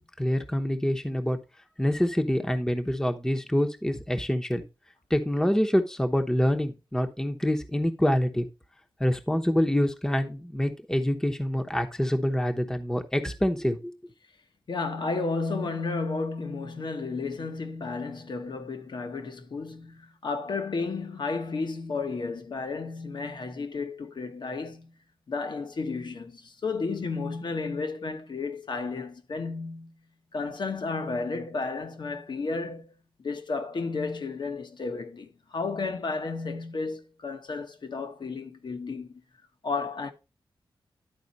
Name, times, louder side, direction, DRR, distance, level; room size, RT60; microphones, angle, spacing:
voice 1, 0.2-1.4 1.8-4.6 5.1-8.5 9.0-13.9, equal, 5° left, 0.9 m, -26 dB
voice 2, 14.7-24.9 25.3-30.0 30.3-32.9 33.2-39.2 39.6-40.1, left 4 dB, 60° left, 1.1 m, -32 dB
11.0 x 4.2 x 4.1 m
cardioid pair, 70°, 9 cm